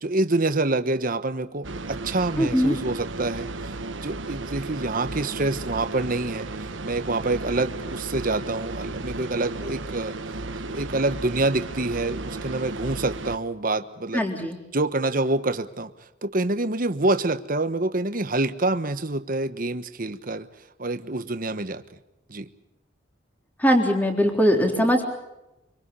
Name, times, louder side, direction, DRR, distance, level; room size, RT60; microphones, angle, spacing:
voice 1, 0.0-3.7 4.0-6.5 6.8-10.2 10.6-14.2 14.7-15.9 16.2-20.5 20.8-21.8 22.3-22.5, right 2 dB, 45° right, 1.2 m, -26 dB
sound 1, 1.6-13.4, right 2 dB, 75° right, 1.4 m, -34 dB
voice 2, 2.4-2.8 14.1-14.6 23.6-25.0, equal, 10° left, 3.7 m, -21 dB
25.5 x 25.0 x 5.6 m
head